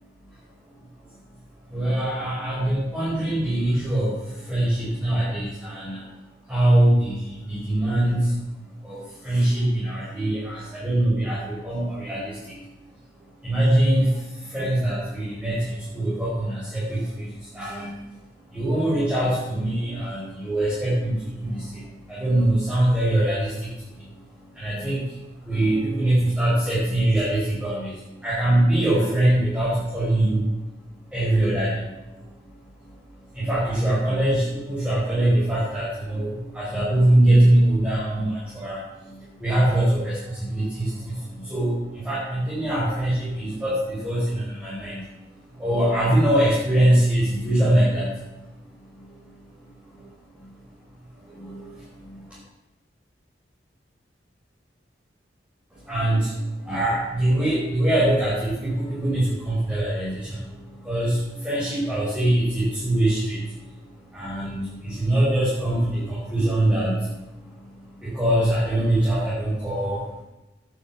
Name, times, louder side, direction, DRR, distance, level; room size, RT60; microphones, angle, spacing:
voice 1, 1.7-6.1 6.5-8.4 8.8-12.6 13.4-18.0 18.5-24.1 24.5-25.1 25.4-30.5 31.1-31.8 32.1-32.3 33.3-45.0 45.5-48.2 48.9-49.1 49.9-50.1 50.4-50.5 51.2-52.4 55.8-63.5 64.1-67.1 67.4-67.7 68.0-70.1, right 1 dB, 5° right, -10 dB, 5.4 m, -23 dB
10.5 x 7.7 x 8.4 m, 1.0 s
head